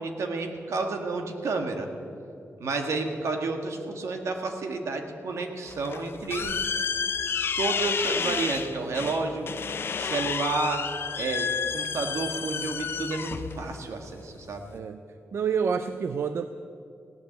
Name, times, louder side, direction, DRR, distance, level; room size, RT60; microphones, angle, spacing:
voice 1, 0.0-1.9 2.6-6.6 7.6-9.5 10.0-10.8 11.1-14.7, right 3 dB, 80° right, 4 dB, 1.6 m, -30 dB
sound 1, 5.7-14.8, left 6 dB, 50° left, 0.5 m, -31 dB
voice 2, 14.7-15.0 15.3-16.5, right 6 dB, 60° right, 10 dB, 0.5 m, -28 dB
16.5 x 8.9 x 8.1 m, 2.5 s
wide cardioid pair, 165°, 5 cm